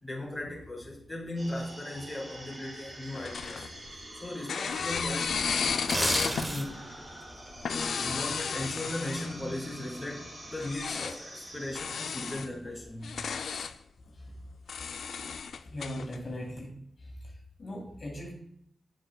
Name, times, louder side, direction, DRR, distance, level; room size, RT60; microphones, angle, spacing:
voice 1, 0.0-3.7 4.2-5.5 6.0-6.8 7.7-13.1, left 1 dB, 10° left, -4 dB, 2.3 m, -37 dB
sound 1, 1.4-11.8, right 1 dB, 50° right, 2.8 m, -46 dB
sound 2, 3.1-4.1 4.5-6.5 7.5-9.5 10.6-11.2 11.8-12.5 13.0-13.8 14.7-16.2, left 6 dB, 80° left, 0.3 m, -33 dB
sound 3, 5.7-6.9 7.3-7.5, right 1 dB, 20° right, 1.0 m, -30 dB
voice 2, 15.7-16.8 17.6-18.3, left 1 dB, 55° left, -2 dB, 2.0 m, -38 dB
7.3 x 6.7 x 2.3 m, 0.70 s
cardioid pair, 75°, 0 cm